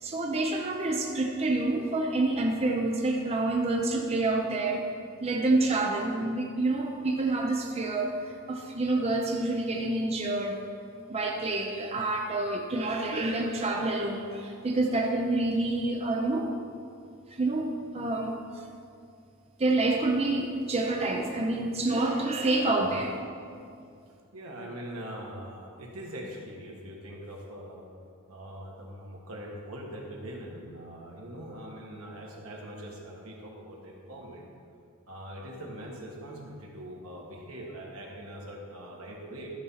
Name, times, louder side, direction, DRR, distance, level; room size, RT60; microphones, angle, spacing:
voice 1, 0.0-4.8 5.2-8.1 8.5-10.6 11.1-16.5 17.3-18.7 19.6-23.1, right 2 dB, 30° right, 1 dB, 0.6 m, -28 dB
voice 2, 24.3-27.8 28.3-34.5 35.1-39.5, equal, 80° right, -1 dB, 1.6 m, -42 dB
12.5 x 4.3 x 5.6 m, 2.3 s
head